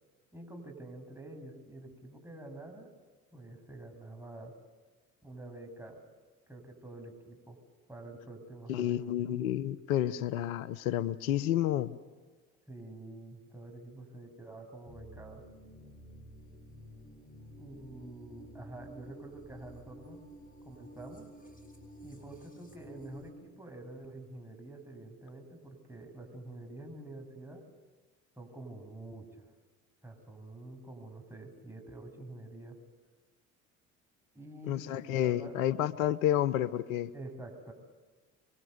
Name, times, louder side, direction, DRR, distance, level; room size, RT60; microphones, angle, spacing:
voice 1, 0.3-2.9 3.3-4.5 5.2-6.0 6.5-7.6 7.9-9.0 12.7-15.4 17.6-20.2 20.6-21.3 22.0-27.6 28.4-29.5 30.0-32.8 34.3-35.6 37.1-37.7, right 2 dB, 5° right, 3 dB, 7.5 m, -47 dB
voice 2, 8.7-12.0 34.7-37.1, left 12 dB, 80° left, 17 dB, 0.9 m, -30 dB
sound 1, 14.9-23.3, equal, 20° left, 7.7 m, -51 dB
28.5 x 23.5 x 8.1 m, 1.3 s
hypercardioid pair, 60°, 41 cm